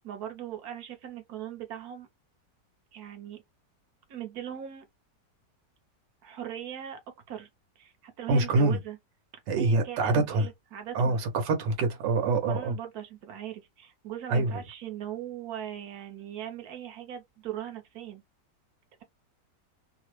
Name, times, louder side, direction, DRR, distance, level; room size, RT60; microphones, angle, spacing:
voice 1, 0.0-2.1 2.9-3.4 4.1-4.8 6.2-7.0 7.3-7.5 7.8-9.0 9.6-11.2 12.4-18.2, right 10 dB, 65° right, 1.2 m, -39 dB
voice 2, 8.3-8.8 9.5-10.5 10.9-12.7 14.3-14.5, right 3 dB, 80° right, 1.5 m, -25 dB
3.2 x 2.0 x 3.0 m
omnidirectional pair, 1.9 m